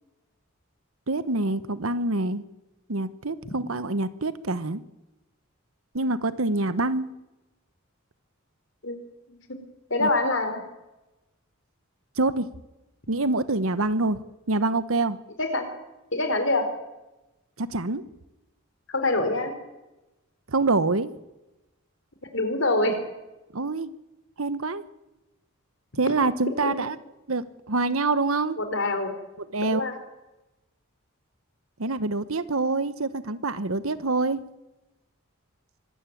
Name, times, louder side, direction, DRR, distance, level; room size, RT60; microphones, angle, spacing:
voice 1, 1.1-2.4 2.9-4.8 5.9-7.1 10.0-10.1 12.2-12.5 13.1-14.2 14.5-15.2 17.6-18.0 20.5-21.1 23.5-23.9 24.4-24.8 26.0-27.0 27.3-28.6 29.5-29.9 31.8-34.4, right 3 dB, 80° right, 14 dB, 1.2 m, -26 dB
voice 2, 9.9-10.6 15.4-15.7 16.1-16.7 18.9-19.5 22.3-23.0 26.6-26.7 28.6-29.1 29.6-29.9, left 2 dB, 60° left, 7 dB, 4.1 m, -25 dB
24.5 x 14.0 x 9.3 m, 1.0 s
head